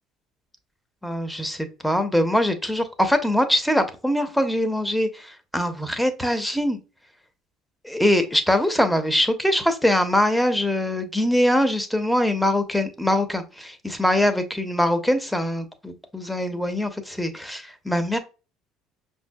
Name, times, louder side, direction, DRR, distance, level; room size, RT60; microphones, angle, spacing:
voice 1, 1.0-6.8 7.8-18.2, left 1 dB, 5° left, 8 dB, 0.8 m, -23 dB
5.7 x 2.7 x 2.3 m, 0.31 s
hypercardioid pair, 65°, 0 cm